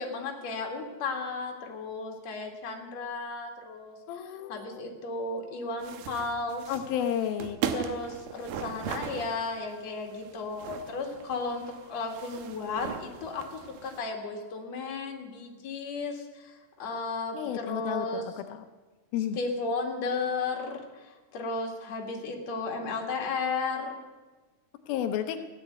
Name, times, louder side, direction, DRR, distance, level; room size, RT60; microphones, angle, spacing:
voice 1, 0.0-6.6 7.7-18.3 19.3-24.0, left 3 dB, 50° left, 0 dB, 3.0 m, -34 dB
voice 2, 4.1-4.8 6.7-7.6 17.3-18.6 19.1-19.4 24.9-25.4, left 9 dB, 90° left, 6 dB, 2.7 m, -32 dB
sound 1, 5.8-14.0, right 8 dB, 85° right, 2.8 m, -39 dB
16.0 x 10.5 x 8.1 m, 1.3 s
omnidirectional pair, 4.1 m